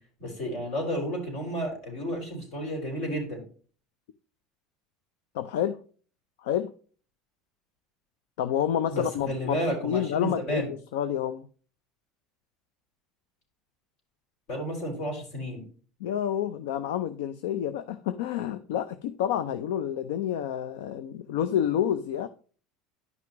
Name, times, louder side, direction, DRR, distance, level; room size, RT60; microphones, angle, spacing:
voice 1, 0.2-3.4 8.9-10.7 14.5-15.6, equal, 70° left, 4.7 m, -31 dB
voice 2, 5.3-5.8 6.4-6.7 8.4-9.6 9.8-11.5 16.0-22.3, left 10 dB, 85° left, 0.5 m, -29 dB
10.5 x 6.0 x 3.0 m
supercardioid pair, 110°, 0 cm